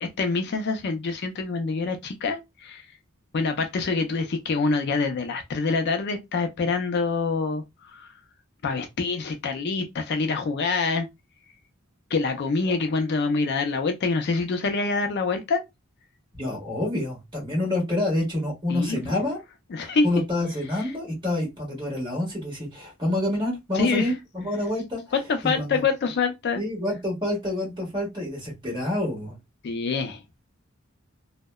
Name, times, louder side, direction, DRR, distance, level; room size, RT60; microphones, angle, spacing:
voice 1, 0.0-2.9 3.3-8.1 8.6-11.1 12.1-15.6 18.7-19.2 19.7-20.1 23.7-24.1 25.1-26.6 29.6-30.2, left 4 dB, 55° left, 0.4 m, -26 dB
voice 2, 16.3-19.4 19.8-25.0 25.4-25.8 26.5-29.3, left 1 dB, 25° right, 1.4 m, -28 dB
2.7 x 2.1 x 2.2 m
head